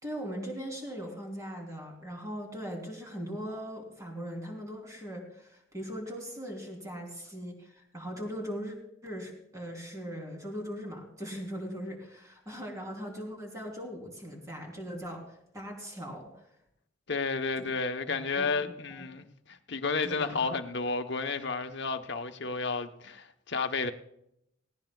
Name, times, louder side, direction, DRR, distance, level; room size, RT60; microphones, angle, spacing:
voice 1, 0.0-8.8 9.0-16.5 18.1-19.1 20.0-20.5, equal, 15° right, 3.4 m, -40 dB
voice 2, 17.1-23.9, left 4 dB, 60° left, 1.0 m, -32 dB
18.5 x 17.5 x 2.3 m
head